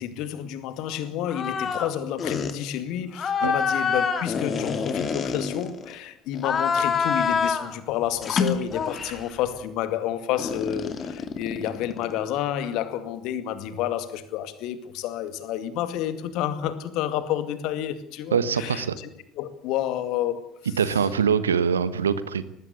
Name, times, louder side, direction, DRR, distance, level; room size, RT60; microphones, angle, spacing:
voice 1, 0.0-20.5, left 11 dB, 55° left, 2.1 m, -30 dB
sound 1, 1.3-1.9 2.2-2.5 3.2-5.9 6.4-7.7 8.2-9.3 10.4-12.2, left 6 dB, 35° left, 2.5 m, -26 dB
voice 2, 18.3-19.0 20.8-22.4, right 7 dB, 80° right, 1.2 m, -23 dB
19.5 x 16.0 x 9.9 m
figure-of-eight pair, 60°, 0 cm